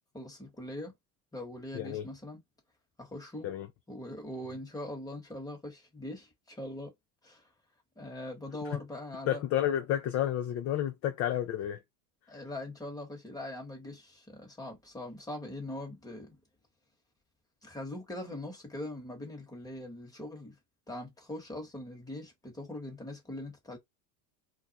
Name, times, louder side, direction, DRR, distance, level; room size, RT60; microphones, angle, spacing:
voice 1, 0.1-0.9 1.3-2.4 3.0-3.5 3.9-6.9 7.2-7.5 8.0-9.4 12.3-16.4 17.6-20.5 20.9-23.8, left 1 dB, 10° left, 1.2 m, -42 dB
voice 2, 1.7-2.0 3.4-3.7 8.7-8.8 9.3-11.8, left 11 dB, 35° left, 0.4 m, -31 dB
2.4 x 2.2 x 3.9 m
supercardioid pair, 105°, 42 cm